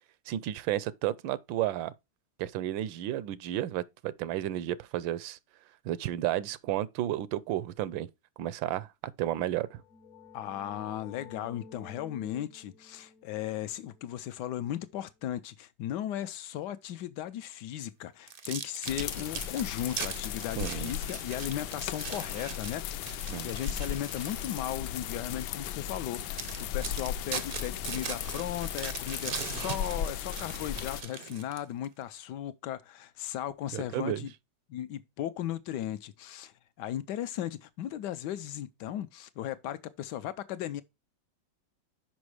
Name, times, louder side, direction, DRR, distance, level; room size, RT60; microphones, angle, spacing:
voice 1, 0.3-1.9 2.4-5.4 5.8-8.1 8.4-9.8 20.6-20.9 23.3-23.5 33.7-34.2, right 13 dB, 85° right, 1.4 m, -32 dB
sound 1, 9.5-15.0, left 4 dB, 50° left, 1.0 m, -53 dB
voice 2, 10.3-34.3 34.7-40.8, left 11 dB, 75° left, 1.1 m, -36 dB
sound 2, 18.3-24.7 25.2-25.4 25.9-26.0 26.3-31.8, right 6 dB, 70° right, 0.5 m, -40 dB
sound 3, 18.8-31.0, left 9 dB, 90° left, 1.4 m, -36 dB
6.1 x 5.2 x 4.8 m
omnidirectional pair, 2.0 m